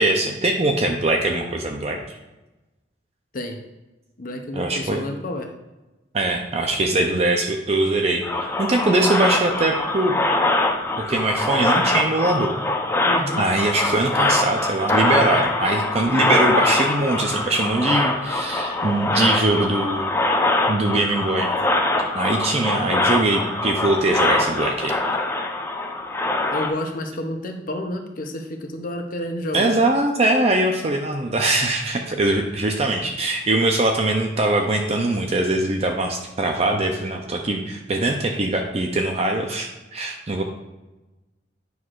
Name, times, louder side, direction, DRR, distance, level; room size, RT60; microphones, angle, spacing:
voice 1, 0.0-2.2 4.5-5.0 6.1-10.1 11.0-12.5 13.4-20.1 20.7-21.5 22.1-25.0 29.5-40.4, right 2 dB, 35° right, 3 dB, 0.6 m, -22 dB
voice 2, 4.2-5.5 13.0-13.5 26.5-29.8, left 1 dB, 50° left, 4 dB, 0.7 m, -30 dB
sound 1, 8.2-26.7, left 2 dB, 15° left, 0.7 m, -23 dB
9.4 x 6.2 x 2.5 m, 1.1 s
head